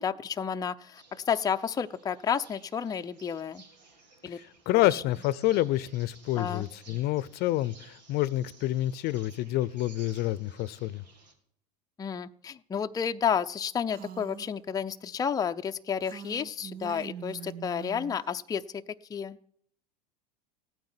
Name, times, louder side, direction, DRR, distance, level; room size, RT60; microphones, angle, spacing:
voice 1, 0.0-3.6 4.2-4.4 4.9-5.0 6.4-6.6 12.0-19.4, left 7 dB, 15° left, 7 dB, 0.6 m, -31 dB
sound 1, 0.9-11.3, right 4 dB, 90° right, 3.3 m, -56 dB
voice 2, 4.3-11.0, left 15 dB, 50° left, 20 dB, 0.7 m, -28 dB
Female speech woman speaking, 13.9-14.5 16.0-18.3, right 8 dB, 45° right, 0.8 m, -43 dB
15.5 x 9.3 x 9.8 m, 0.66 s
hypercardioid pair, 95°, 21 cm